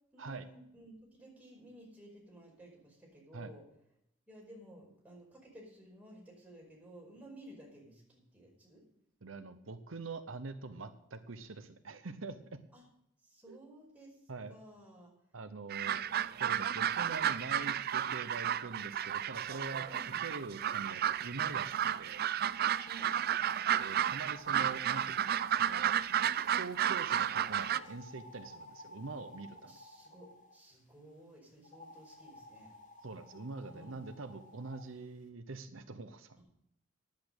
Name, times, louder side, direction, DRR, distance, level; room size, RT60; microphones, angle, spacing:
voice 1, 0.1-3.6 4.3-8.8 12.7-12.8 13.2-15.1 15.7-16.1 19.9-20.2 22.9-23.1 29.7-32.7 33.7-34.0 36.4-36.5, right 1 dB, 10° right, -3 dB, 5.1 m, -55 dB
voice 2, 9.2-12.4 13.5-13.6 14.3-14.5 15.3-16.0 16.4-19.8 20.2-22.2 23.8-26.0 26.5-29.8 33.0-36.4, right 3 dB, 80° right, 9 dB, 0.9 m, -44 dB
sound 1, 15.7-27.8, right 10 dB, 50° right, 0.4 m, -32 dB
sound 2, 22.7-26.6 27.3-30.6 31.6-34.9, left 1 dB, 40° left, 2.0 m, -54 dB
10.5 x 8.5 x 8.0 m, 0.77 s
head